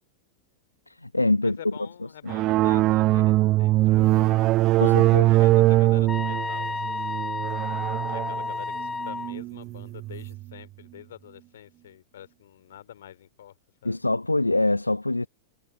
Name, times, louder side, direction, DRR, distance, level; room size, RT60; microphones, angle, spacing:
voice 1, 0.9-1.6 4.8-5.3 13.8-15.3, left 2 dB, 85° left, 0.9 m, -24 dB
voice 2, 1.4-7.2 8.1-13.5 13.8-14.0, left 11 dB, 60° left, 2.8 m, -46 dB
sound 1, 2.3-10.4, right 17 dB, 35° right, 0.6 m, -22 dB
sound 2, 6.1-9.3, left 4 dB, 10° left, 0.3 m, -31 dB
figure-of-eight pair, 90°, 0 cm